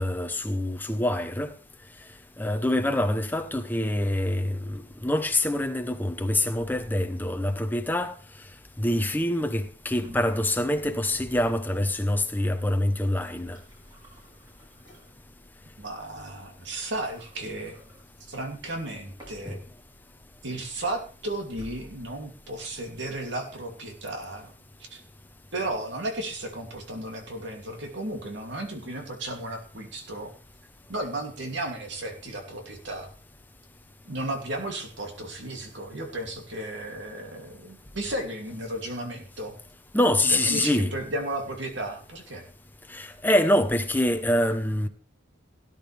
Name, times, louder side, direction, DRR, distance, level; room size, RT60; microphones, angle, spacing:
voice 1, 0.0-1.5 2.4-8.1 8.8-13.6 19.4-19.6 39.9-40.9 42.9-44.9, left 1 dB, 10° left, 0.9 m, -25 dB
sound 1, 9.5-23.4, equal, 25° right, 5.4 m, -53 dB
voice 2, 15.8-17.8 18.3-19.6 20.4-24.5 24.8-25.0 25.5-30.3 30.9-33.1 34.0-39.6 40.3-42.5, right 1 dB, 60° right, 2.8 m, -34 dB
17.5 x 10.5 x 3.4 m
head